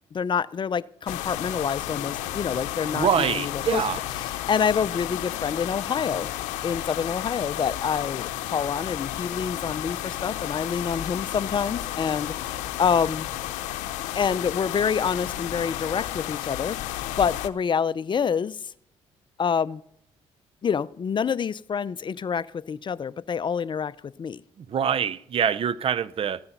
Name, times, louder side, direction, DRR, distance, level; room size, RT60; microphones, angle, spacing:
voice 1, 0.1-3.8 4.2-6.3 6.6-13.3 14.1-16.8 17.1-18.7 19.4-19.8 20.6-24.4, left 6 dB, 40° left, 0.6 m, -27 dB
sound 1, 1.1-17.5, left 14 dB, 85° left, 0.7 m, -32 dB
voice 2, 2.9-4.0 24.6-26.4, right 8 dB, 50° right, 0.6 m, -25 dB
14.5 x 9.6 x 5.8 m
supercardioid pair, 65°, 12 cm